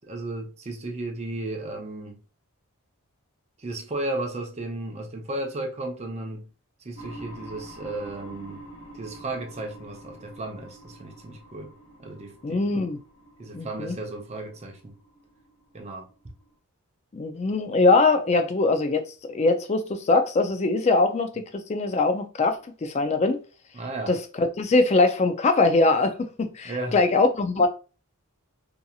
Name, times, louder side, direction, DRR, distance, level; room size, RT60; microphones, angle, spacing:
voice 1, 0.0-2.2 3.6-6.5 6.8-8.6 8.9-11.7 12.0-12.7 13.4-15.0 15.7-16.1 23.7-24.1 26.6-27.0, right 2 dB, 30° right, 0.5 m, -34 dB
sound 1, 7.0-16.5, right 1 dB, 65° left, 1.0 m, -47 dB
voice 2, 12.4-13.0 13.5-14.0 17.1-23.4 24.1-27.7, left 3 dB, 30° left, 0.3 m, -22 dB
2.8 x 2.6 x 2.3 m
head